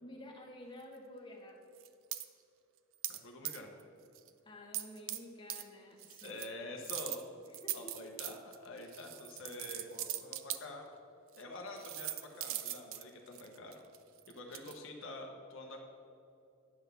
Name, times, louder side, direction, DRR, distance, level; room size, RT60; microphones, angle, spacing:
voice 1, 0.0-1.6 4.4-6.4 7.5-8.0, left 1 dB, 25° left, -1 dB, 1.2 m, -51 dB
sound 1, 1.8-2.3 3.0-3.2 3.4-3.8 4.2-4.3 4.7-5.2 5.5-5.6 6.0-6.5 6.8-10.6 11.3-11.4 11.8-14.8, right 14 dB, 70° right, 0.4 m, -40 dB
voice 2, 3.1-3.7 6.2-7.2 7.7-10.9 11.4-13.8 14.3-15.8, left 2 dB, 65° left, 2 dB, 0.9 m, -47 dB
9.8 x 4.0 x 6.8 m, 2.7 s
head